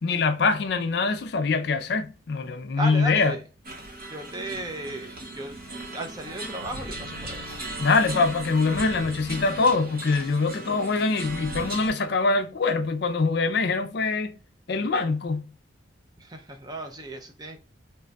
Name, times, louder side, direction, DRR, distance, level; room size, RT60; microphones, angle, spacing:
voice 1, 0.0-3.3 7.8-14.3 14.7-15.4, left 4 dB, 55° left, 0.4 m, -24 dB
voice 2, 2.8-3.4 4.1-5.6 5.9-7.5 16.2-17.6, right 1 dB, 20° right, 0.5 m, -35 dB
sound 1, 3.6-11.9, right 1 dB, 45° right, 0.9 m, -37 dB
3.1 x 2.3 x 3.8 m
head